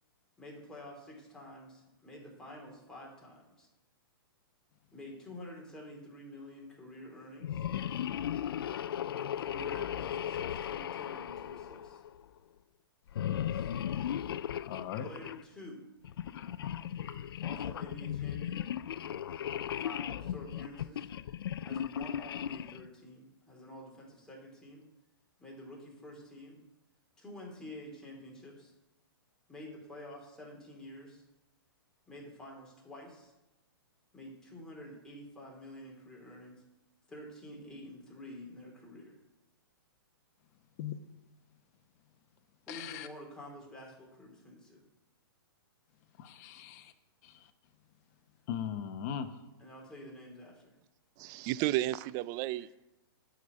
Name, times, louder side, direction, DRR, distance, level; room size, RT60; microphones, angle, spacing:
voice 1, 0.4-3.7 4.9-7.7 9.2-12.0 13.5-13.7 15.0-15.8 17.4-18.6 19.8-21.1 21.6-24.8 25.4-26.6 27.2-28.7 29.5-31.2 32.1-33.3 34.1-36.6 37.1-39.2 42.7-44.8 49.6-50.7, left 1 dB, 5° left, 2.9 m, -49 dB
sound 1, 7.4-12.2 13.1-15.4 16.0-22.9, left 10 dB, 75° left, 0.4 m, -36 dB
voice 2, 14.6-15.1 16.3-16.5 40.8-41.0 42.7-43.1 46.2-46.9 47.2-47.5 48.5-49.4, left 9 dB, 40° left, 1.0 m, -39 dB
voice 3, 51.2-52.7, right 16 dB, 25° right, 0.3 m, -32 dB
9.4 x 5.1 x 8.0 m
hypercardioid pair, 140°, 12 cm